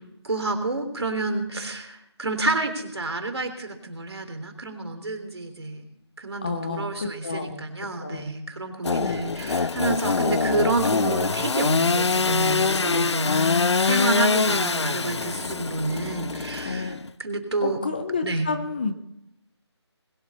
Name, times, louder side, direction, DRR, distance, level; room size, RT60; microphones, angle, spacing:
voice 1, 0.2-5.8 6.2-16.9 17.2-17.8 18.2-18.5, right 2 dB, 65° right, 6 dB, 3.5 m, -29 dB
voice 2, 6.4-7.7 8.0-8.3 13.2-14.1 16.6-17.0 17.6-18.9, left 4 dB, 20° left, 8 dB, 0.7 m, -30 dB
Engine / Sawing, 8.8-17.1, left 4 dB, 75° left, 0.5 m, -24 dB
21.0 x 12.5 x 4.2 m, 0.79 s
figure-of-eight pair, 170°, 15 cm